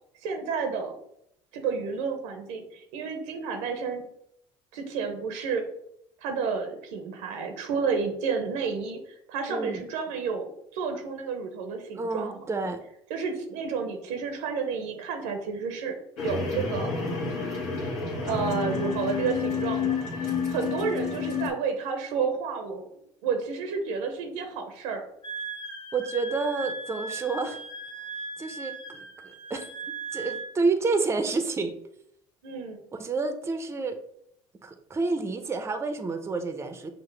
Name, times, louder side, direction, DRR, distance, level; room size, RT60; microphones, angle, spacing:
voice 1, 0.2-0.9 1.5-4.0 4.7-5.6 6.2-12.5 13.1-15.9 16.2-16.9 18.2-22.9 23.2-25.0 32.4-32.8, right 5 dB, 85° right, 5 dB, 0.7 m, -31 dB
voice 2, 9.5-9.8 12.0-12.8 25.9-27.6 28.4-29.7 30.1-31.7 32.9-34.0 34.6-36.9, right 3 dB, 20° right, 8 dB, 0.5 m, -29 dB
sound 1, 16.2-21.5, left 5 dB, 85° left, 1.4 m, -29 dB
Wind instrument woodwind instrument, 25.2-30.5, right 3 dB, 45° left, 1.3 m, -38 dB
5.9 x 2.1 x 3.2 m, 0.74 s
supercardioid pair, 85°, 13 cm